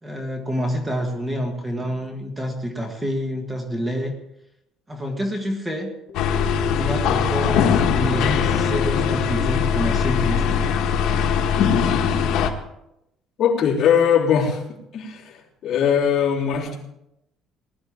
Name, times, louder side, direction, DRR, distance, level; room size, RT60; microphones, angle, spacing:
voice 1, 0.0-4.2 4.9-5.9 6.6-10.7, equal, 15° right, 3 dB, 1.5 m, -27 dB
sound 1, 6.1-12.1, left 6 dB, 90° left, 1.6 m, -39 dB
sound 2, 6.1-12.5, left 7 dB, 70° left, 1.4 m, -21 dB
voice 2, 13.4-14.6 14.9-16.8, left 7 dB, 40° left, -6 dB, 3.8 m, -20 dB
20.0 x 12.0 x 3.7 m, 0.85 s
cardioid pair, 160°, 0 cm